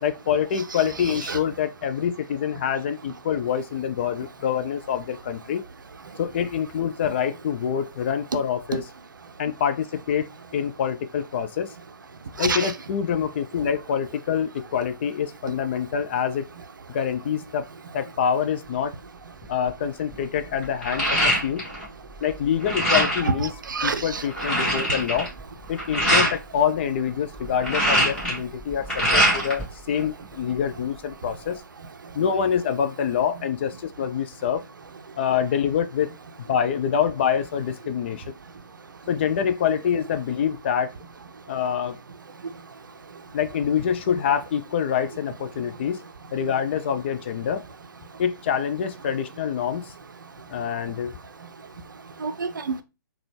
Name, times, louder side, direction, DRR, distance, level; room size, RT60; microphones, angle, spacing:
voice 1, 0.0-5.6 6.2-8.8 9.4-10.3 10.5-11.7 12.4-16.5 16.9-17.7 17.9-18.9 19.5-21.6 22.2-23.5 23.8-25.3 25.7-31.6 32.1-34.6 35.2-36.1 36.4-38.2 39.1-40.9 41.5-42.0 43.3-46.0 46.3-47.6 48.2-49.9 50.5-51.1, left 8 dB, 35° left, 0.3 m, -26 dB
voice 2, 12.4-12.7 23.4-24.2 52.2-52.8, right 5 dB, 70° right, 0.5 m, -28 dB
sound 1, 19.4-19.7 20.1-21.9 22.2-23.3 23.8-23.9 24.1-26.3 27.4-29.6 30.0-30.8, equal, 5° left, 1.5 m, -23 dB
3.8 x 2.3 x 3.2 m
figure-of-eight pair, 130°, 11 cm